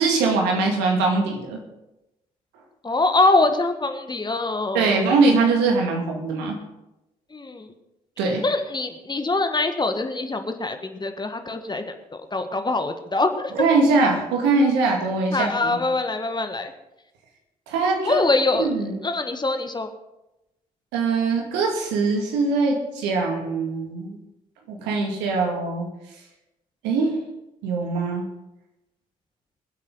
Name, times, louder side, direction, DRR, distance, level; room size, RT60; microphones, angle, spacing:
voice 1, 0.0-1.6 4.7-6.6 8.2-8.4 13.5-15.8 17.7-18.3 18.5-19.0 20.9-24.2 24.7-25.9 26.8-27.2 27.6-28.2, right 3 dB, 70° right, 1 dB, 2.3 m, -22 dB
voice 2, 2.8-5.0 7.3-7.7 8.4-13.5 15.3-16.7 18.0-18.7 19.0-19.9, left 2 dB, 25° left, 7 dB, 1.5 m, -24 dB
24.5 x 8.3 x 4.0 m, 0.92 s
figure-of-eight pair, 45°, 19 cm